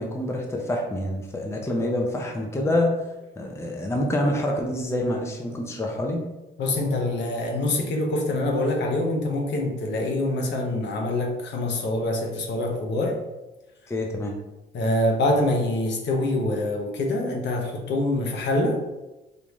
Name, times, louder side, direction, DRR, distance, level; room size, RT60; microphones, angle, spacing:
voice 1, 0.0-2.9 3.4-6.2 13.9-14.4, left 1 dB, 15° left, 1 dB, 0.5 m, -26 dB
voice 2, 6.6-13.2 14.7-18.8, left 1 dB, 65° left, 1 dB, 0.8 m, -25 dB
3.5 x 2.5 x 3.0 m, 1.1 s
cardioid pair, 90°, 20 cm